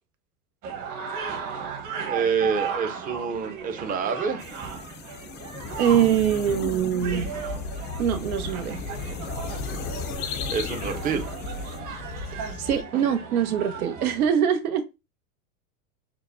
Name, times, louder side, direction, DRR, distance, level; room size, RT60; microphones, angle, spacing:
sound 1, 0.6-14.3, right 6 dB, 45° right, 1.2 m, -36 dB
voice 1, 2.0-4.4 10.5-11.3, right 6 dB, 20° right, 0.6 m, -27 dB
sound 2, 4.4-11.8, left 6 dB, 25° left, 0.4 m, -38 dB
voice 2, 5.8-7.3 8.0-8.8 12.3-14.8, right 9 dB, 85° right, 1.0 m, -23 dB
sound 3, 7.0-12.8, left 4 dB, 80° left, 1.1 m, -35 dB
6.4 x 2.2 x 2.6 m
supercardioid pair, 115°, 43 cm